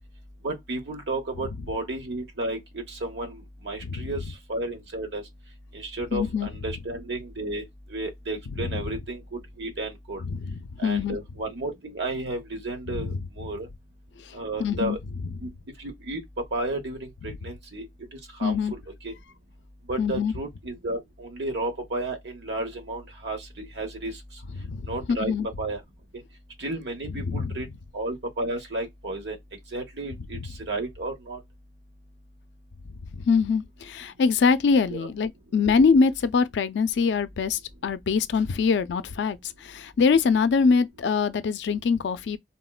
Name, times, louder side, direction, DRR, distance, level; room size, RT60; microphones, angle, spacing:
voice 1, 0.4-4.2 4.5-5.2 5.7-7.6 7.9-10.2 10.8-13.7 14.3-15.0 15.4-15.5 15.8-16.2 16.5-17.9 18.1-19.1 19.9-24.2 24.9-25.8 26.6-27.7 27.9-29.4 29.7-30.4 30.7-31.4 34.9-35.1, right 2 dB, 80° right, 1.0 m, -32 dB
voice 2, 6.1-6.5 8.6-8.9 10.2-11.2 12.9-13.2 14.2-15.0 18.4-18.7 20.0-20.3 24.6-25.5 27.2-27.5 33.1-42.4, left 5 dB, 85° left, 0.4 m, -24 dB
3.5 x 2.1 x 2.3 m
head